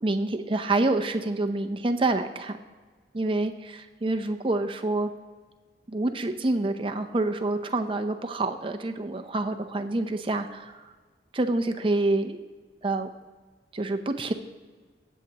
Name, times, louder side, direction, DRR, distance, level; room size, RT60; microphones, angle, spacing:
voice 1, 0.0-2.6 3.1-5.1 5.9-10.8 11.3-12.4 12.8-13.1 13.7-14.3, right 2 dB, 30° right, 7 dB, 0.6 m, -27 dB
20.5 x 7.4 x 2.9 m, 1.4 s
head